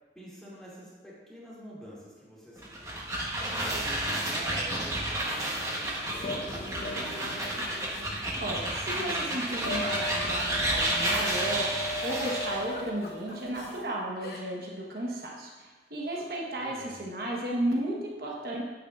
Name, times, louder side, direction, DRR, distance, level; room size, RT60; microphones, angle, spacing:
voice 1, 0.1-3.0 3.3-7.6 16.6-17.0, right 1 dB, 5° left, -8 dB, 2.3 m, -46 dB
sound 1, 2.6-12.7, right 1 dB, 15° right, 1.0 m, -31 dB
sound 2, 5.5-13.8, left 2 dB, 70° left, 1.7 m, -39 dB
voice 2, 8.4-18.6, right 1 dB, 55° right, -3 dB, 1.2 m, -34 dB
Giggle, 12.1-13.4 14.2-14.7 15.0-15.2 16.1-16.3, left 2 dB, 55° left, 1.0 m, -44 dB
8.8 x 8.7 x 2.5 m, 1.3 s
head